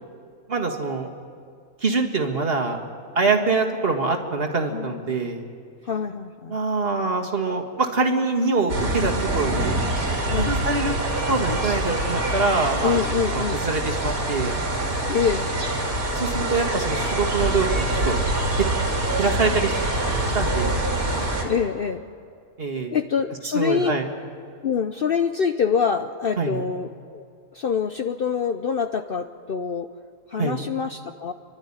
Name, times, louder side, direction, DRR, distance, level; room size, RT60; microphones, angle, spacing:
voice 1, 0.5-1.1 1.8-2.8 3.2-5.5 6.5-9.7 10.3-10.9 11.3-13.0 13.3-14.6 16.1-18.2 19.2-19.8 20.3-20.8 22.6-22.9 23.4-24.1 26.4-26.7 30.4-30.6, right 3 dB, 45° right, 3 dB, 1.9 m, -24 dB
voice 2, 4.7-5.1 5.8-6.6 10.3-10.6 12.8-13.6 15.1-15.5 21.4-22.0 22.9-23.9 24.6-27.2 27.5-29.9 30.3-31.3, left 6 dB, 50° left, 8 dB, 0.7 m, -25 dB
sound 1, 8.7-21.4, right 1 dB, 90° right, 3.4 m, -25 dB
29.5 x 12.0 x 9.9 m, 2.2 s
omnidirectional pair, 1.5 m